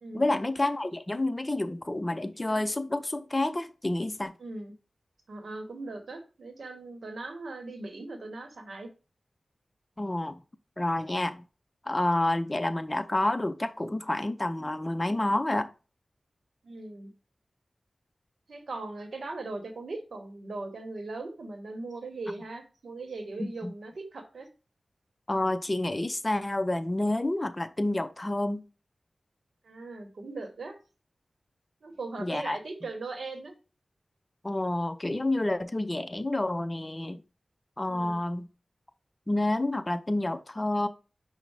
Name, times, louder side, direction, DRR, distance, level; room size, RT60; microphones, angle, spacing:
voice 1, 0.1-4.3 10.0-10.4 10.8-11.4 11.9-15.7 23.4-23.7 25.3-28.6 32.2-32.6 34.4-37.2 37.8-38.5 39.3-40.9, left 1 dB, 30° left, 0.5 m, -29 dB
voice 2, 4.4-4.7 5.3-8.9 16.6-17.1 18.5-24.5 29.6-30.8 31.8-33.5 37.9-38.2, right 3 dB, 80° right, 0.8 m, -39 dB
5.4 x 2.0 x 4.6 m
cardioid pair, 45°, 0 cm